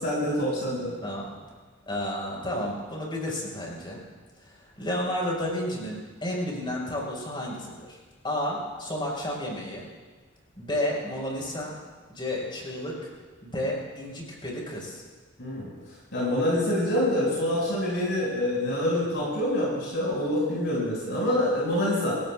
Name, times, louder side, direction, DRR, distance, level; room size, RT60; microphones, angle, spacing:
voice 1, 0.0-0.9 15.4-15.7 16.1-22.2, left 1 dB, 65° left, -6 dB, 6.1 m, -26 dB
voice 2, 1.0-1.4 1.9-4.0 4.4-4.5 4.8-8.0 8.2-9.9 10.6-11.8 12.1-12.9 13.4-15.0, left 1 dB, 25° left, -3 dB, 5.1 m, -31 dB
27.0 x 16.0 x 2.5 m, 1.4 s
head